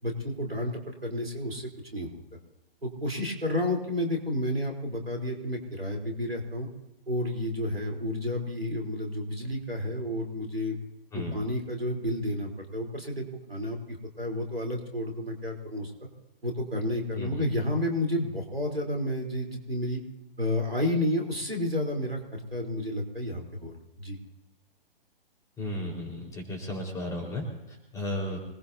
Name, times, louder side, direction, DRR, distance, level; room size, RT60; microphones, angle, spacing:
voice 1, 0.0-2.2 2.8-6.7 7.1-10.8 11.1-15.9 16.4-20.0 20.4-24.2, left 1 dB, 90° right, 1 dB, 3.9 m, -31 dB
voice 2, 11.1-11.4 17.1-17.4 25.6-28.4, left 1 dB, 10° left, 0 dB, 4.6 m, -34 dB
26.0 x 19.5 x 2.8 m, 0.98 s
figure-of-eight pair, 125°, 29 cm